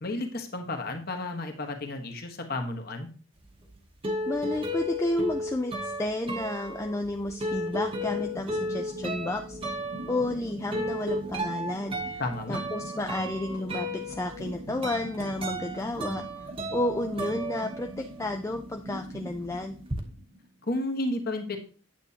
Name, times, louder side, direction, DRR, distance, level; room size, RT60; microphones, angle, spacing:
voice 1, 0.0-3.1 12.2-12.6 20.7-21.6, left 2 dB, 45° left, 4 dB, 1.3 m, -32 dB
sound 1, 3.5-18.3 18.6-20.0, equal, 25° right, 1.0 m, -34 dB
voice 2, 4.3-9.6 10.1-12.2 12.5-19.8, left 1 dB, 15° left, 4 dB, 0.4 m, -31 dB
sound 2, 8.0-20.7, equal, 90° right, 2.2 m, -44 dB
9.1 x 7.7 x 2.8 m, 0.39 s
head